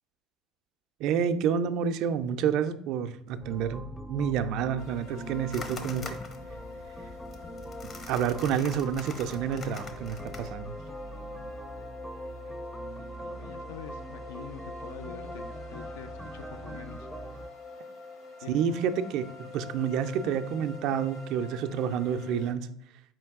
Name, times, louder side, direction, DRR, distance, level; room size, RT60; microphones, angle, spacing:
voice 1, 1.0-6.2 8.1-10.7 18.5-22.7, right 7 dB, 70° right, 10 dB, 0.3 m, -29 dB
sound 1, 3.4-17.5, right 1 dB, ahead, 0.4 m, -43 dB
sound 2, 4.8-22.5, left 3 dB, 65° left, 1.2 m, -45 dB
sound 3, 5.5-10.5, left 4 dB, 45° left, 0.7 m, -45 dB
voice 2, 12.1-17.1 18.4-18.6, left 7 dB, 85° left, 9 dB, 0.3 m, -46 dB
4.4 x 3.1 x 3.5 m, 0.70 s
hypercardioid pair, 75°, 0 cm